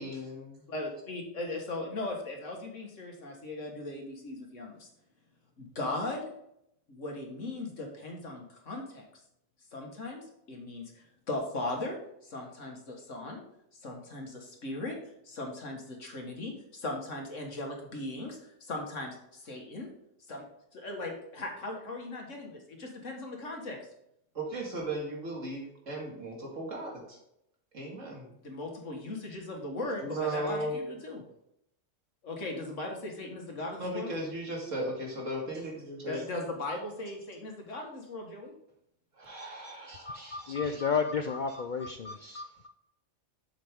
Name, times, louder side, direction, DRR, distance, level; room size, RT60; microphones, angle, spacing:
voice 1, 0.0-0.6 24.3-27.2 27.7-28.3 30.0-30.8 33.8-36.2 39.1-40.8 42.1-42.2, right 1 dB, 80° right, -1 dB, 2.5 m, -37 dB
voice 2, 0.7-4.9 5.6-6.2 6.9-9.0 9.7-10.2 10.5-12.0 12.2-13.4 13.8-15.0 15.2-19.9 20.3-20.4 20.7-23.8 28.4-31.2 32.2-34.1 36.1-38.5, left 2 dB, 75° left, 1 dB, 2.0 m, -38 dB
voice 3, 40.1-42.7, left 5 dB, 55° left, 6 dB, 0.5 m, -32 dB
7.5 x 7.1 x 3.6 m, 0.77 s
omnidirectional pair, 1.3 m